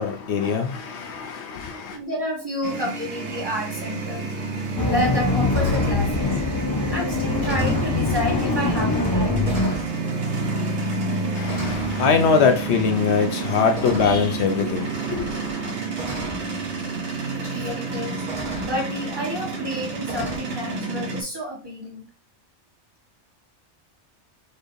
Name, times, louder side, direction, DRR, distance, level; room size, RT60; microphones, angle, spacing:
voice 1, 0.0-2.0 11.3-15.3, left 5 dB, 75° left, 0.9 m, -22 dB
voice 2, 1.9-4.3 4.9-6.4 6.9-9.5 17.3-18.2 18.6-22.1, equal, 20° right, 1.2 m, -30 dB
sound 1, 2.6-21.2, right 4 dB, 75° right, 1.2 m, -30 dB
sound 2, 4.5-4.6 5.1-5.3 5.5-6.0 6.9-7.0 7.3-8.0 8.9-9.1 9.4-9.9 10.9-11.1 11.5-12.0 13.7-14.3 15.4-15.5 16.0-16.4 17.6-17.7 18.3-18.8 20.1-20.4, right 1 dB, 40° right, 1.5 m, -34 dB
sound 3, 4.8-9.7, left 3 dB, 25° left, 0.5 m, -23 dB
4.2 x 3.2 x 2.6 m
omnidirectional pair, 1.2 m